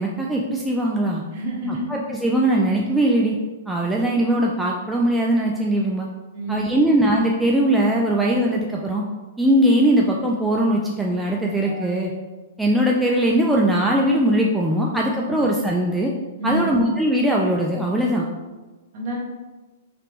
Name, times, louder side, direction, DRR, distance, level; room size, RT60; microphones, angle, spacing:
voice 1, 0.0-1.2 1.7-3.4 3.7-6.1 6.5-9.0 9.4-12.1 12.6-16.1 16.4-18.3, right 1 dB, 5° right, -2 dB, 0.3 m, -20 dB
voice 2, 1.3-1.9 6.3-6.6 11.6-12.0 15.3-15.4 16.4-16.7 18.9-19.2, equal, 45° right, -4 dB, 1.2 m, -28 dB
3.3 x 2.9 x 3.0 m, 1.2 s
hypercardioid pair, 140°, 0 cm